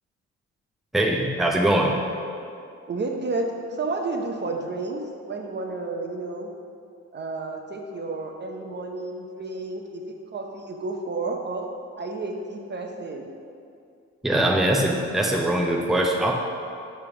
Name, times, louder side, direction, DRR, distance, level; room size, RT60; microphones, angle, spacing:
voice 1, 0.9-2.0 14.2-16.3, right 1 dB, ahead, 0 dB, 0.6 m, -22 dB
voice 2, 2.9-6.5 7.1-10.0 10.3-11.7 12.0-13.3, right 3 dB, 35° right, 2 dB, 0.7 m, -31 dB
6.9 x 3.5 x 5.7 m, 2.4 s
cardioid pair, 90°, 30 cm